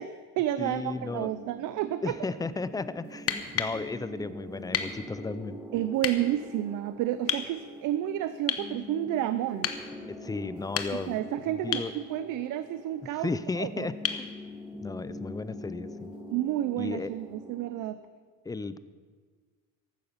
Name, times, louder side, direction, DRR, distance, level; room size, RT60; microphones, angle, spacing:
voice 1, 0.0-2.1 5.7-9.7 11.1-13.3 13.6-13.9 16.3-18.0, right 13 dB, 85° right, 12 dB, 0.6 m, -30 dB
voice 2, 0.6-1.3 2.0-5.6 10.2-11.2 11.5-11.9 13.2-14.3 14.8-16.1 16.8-17.1 18.5-18.8, left 3 dB, 10° left, 14 dB, 0.4 m, -34 dB
sound 1, 0.7-17.8, equal, 10° right, 1.4 m, -44 dB
sound 2, 3.1-3.8 4.7-4.9 6.0-6.2 7.3-7.5 8.5-8.7 9.6-9.8 10.6-11.2 11.7-11.9 14.0-14.3 16.1-16.2, left 8 dB, 50° left, 1.1 m, -31 dB
15.0 x 12.0 x 5.8 m, 1.5 s
cardioid pair, 145°, 31 cm